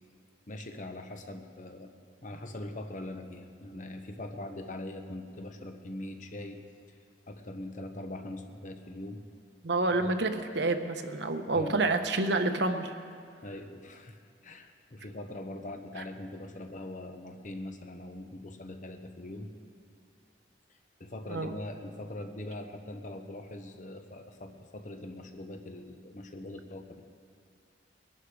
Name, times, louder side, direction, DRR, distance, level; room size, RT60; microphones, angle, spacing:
voice 1, 0.5-1.9 2.2-6.6 7.3-9.3 10.0-10.1 11.5-11.8 13.4-19.5 20.7-27.0, left 1 dB, 45° left, 6 dB, 0.9 m, -42 dB
voice 2, 9.6-12.9 21.3-21.5, right 2 dB, 70° right, 7 dB, 1.1 m, -28 dB
22.0 x 11.5 x 4.8 m, 2.2 s
head